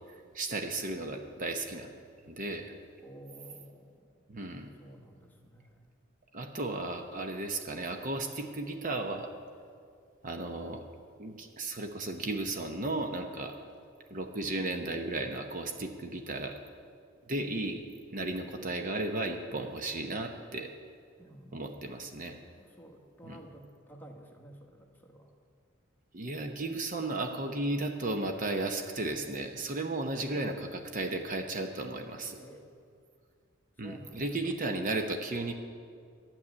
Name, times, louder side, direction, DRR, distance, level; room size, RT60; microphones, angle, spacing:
voice 1, 0.3-1.9 2.3-2.7 4.3-4.7 6.3-9.3 10.2-10.8 11.2-13.6 14.1-16.6 17.3-17.8 18.1-20.7 21.5-22.4 23.2-23.4 26.1-32.4 33.8-35.5, right 2 dB, 40° right, 5 dB, 0.8 m, -34 dB
voice 2, 3.0-4.5 4.8-5.9 21.2-21.7 22.6-25.3 30.3-30.7 32.2-32.7 33.8-34.3, right 1 dB, 10° left, 1 dB, 1.3 m, -52 dB
12.5 x 7.2 x 9.7 m, 2.2 s
head